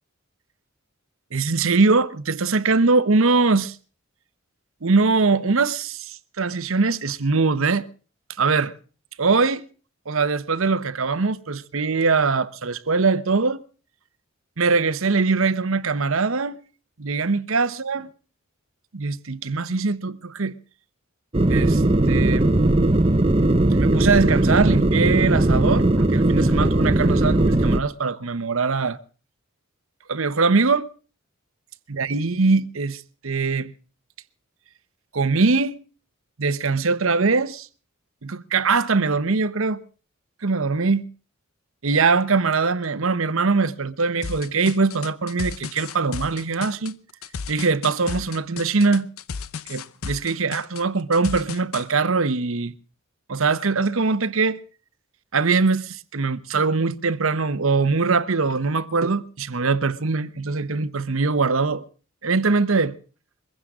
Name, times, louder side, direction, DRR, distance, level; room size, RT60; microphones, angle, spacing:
voice 1, 1.3-3.7 4.8-7.9 8.4-8.7 9.2-9.7 10.1-13.6 14.6-16.6 17.0-18.1 18.9-20.5 21.5-22.5 23.8-29.0 30.1-30.9 31.9-33.7 35.1-35.8 36.4-37.7 38.2-39.8 40.4-41.1 41.8-47.0 47.5-49.1 49.7-52.7 53.3-54.6 55.3-61.8 62.2-63.0, right 4 dB, 70° right, 0.9 m, -22 dB
sound 1, 21.3-27.8, right 1 dB, 25° right, 0.9 m, -18 dB
sound 2, 44.2-51.9, left 5 dB, 80° left, 0.8 m, -34 dB
22.5 x 16.0 x 3.7 m
head